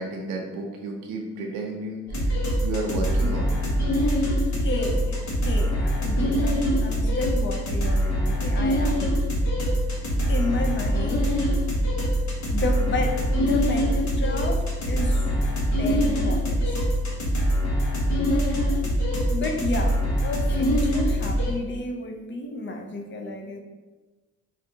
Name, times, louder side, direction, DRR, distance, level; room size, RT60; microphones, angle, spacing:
voice 1, 0.0-2.0 2.3-2.4 2.6-3.5, right 2 dB, 90° right, 1 dB, 0.8 m, -31 dB
sound 1, 2.1-21.5, equal, 65° left, 1.2 m, -24 dB
voice 2, 4.6-9.1 10.3-11.3 12.5-15.5 15.8-16.8 18.3-18.9 19.3-23.6, left 2 dB, 40° left, 3 dB, 0.6 m, -31 dB
5.0 x 2.4 x 2.8 m, 1.2 s
cardioid pair, 90°, 30 cm